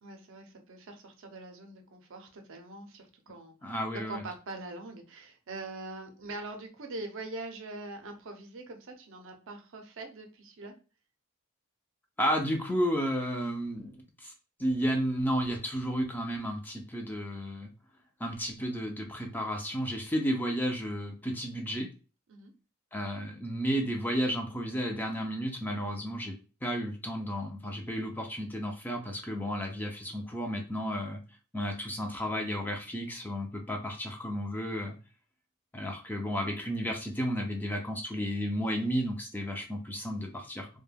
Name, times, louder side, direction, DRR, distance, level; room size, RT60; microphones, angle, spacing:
voice 1, 0.0-10.7 22.3-22.5, right 2 dB, 65° right, 5 dB, 0.5 m, -43 dB
voice 2, 3.6-4.2 12.2-14.3 14.6-17.7 18.2-21.9 22.9-26.3 26.6-31.2 31.5-35.0 35.7-40.7, equal, 10° left, 2 dB, 0.3 m, -32 dB
2.2 x 2.2 x 3.2 m, 0.34 s
head